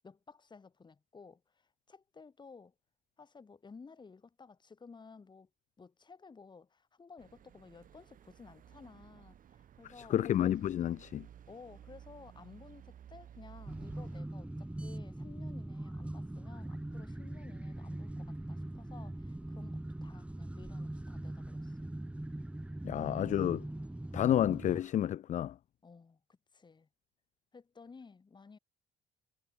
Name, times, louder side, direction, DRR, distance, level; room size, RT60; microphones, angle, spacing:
voice 1, 0.0-2.7 3.2-5.5 5.8-10.2 11.5-21.8 25.8-26.9 27.5-28.6, left 4 dB, 25° left, 7.5 m, -55 dB
sound 1, 7.2-14.2, right 10 dB, 55° right, 5.7 m, -56 dB
voice 2, 10.0-11.3 22.8-23.7 24.1-25.6, left 11 dB, 45° left, 0.6 m, -30 dB
sound 2, 13.7-24.8, right 1 dB, 5° right, 4.0 m, -41 dB
cardioid pair, 110°, 17 cm